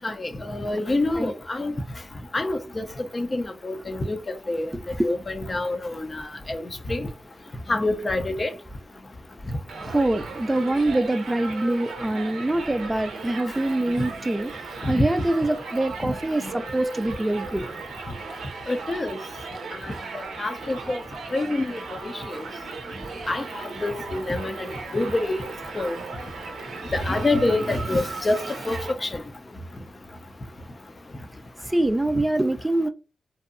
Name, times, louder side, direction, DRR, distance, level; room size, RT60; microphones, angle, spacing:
voice 1, 0.0-1.7 2.3-2.8 3.1-4.2 4.5-4.7 5.0-6.6 6.9-7.1 7.7-8.5 14.9-15.0 16.0-16.1 18.7-19.2 20.4-21.0 21.3-21.7 22.0-22.4 23.3-23.4 23.8-24.7 24.9-25.4 25.8-26.0 26.9-28.4 28.7-29.1, left 2 dB, 40° left, 0.5 m, -26 dB
voice 2, 4.7-5.1 9.8-14.5 14.9-17.6 31.7-32.9, right 1 dB, 15° right, 0.3 m, -24 dB
Crowd, 9.7-28.9, right 4 dB, 80° right, 0.5 m, -37 dB
2.6 x 2.2 x 2.5 m
supercardioid pair, 45°, 0 cm